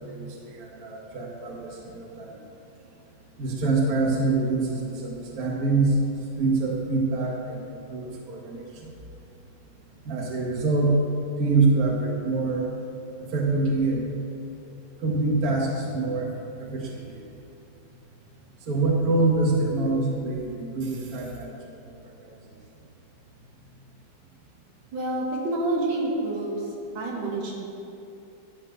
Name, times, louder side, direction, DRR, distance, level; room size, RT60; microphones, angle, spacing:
voice 1, 0.0-2.4 3.4-6.0 6.4-7.6 7.9-8.9 10.1-11.0 11.4-12.6 13.2-14.0 15.0-16.3 16.6-17.2 18.6-21.8 22.2-22.3, right 3 dB, 50° right, -2 dB, 1.7 m, -25 dB
voice 2, 24.9-26.7 26.9-27.7, right 2 dB, 75° right, -2 dB, 2.2 m, -28 dB
12.0 x 4.5 x 8.0 m, 2.7 s
omnidirectional pair, 2.2 m